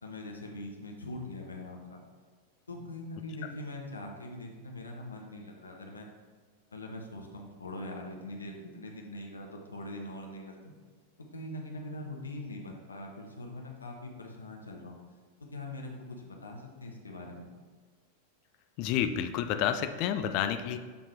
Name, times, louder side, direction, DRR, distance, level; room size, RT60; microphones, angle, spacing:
voice 1, 0.0-2.0 2.7-6.1 6.7-10.7 11.3-15.0 15.4-17.5, left 1 dB, 75° left, 1 dB, 0.8 m, -42 dB
voice 2, 18.8-20.8, left 9 dB, 45° left, 8 dB, 0.4 m, -29 dB
6.9 x 3.7 x 4.5 m, 1.5 s
figure-of-eight pair, 90°, 0 cm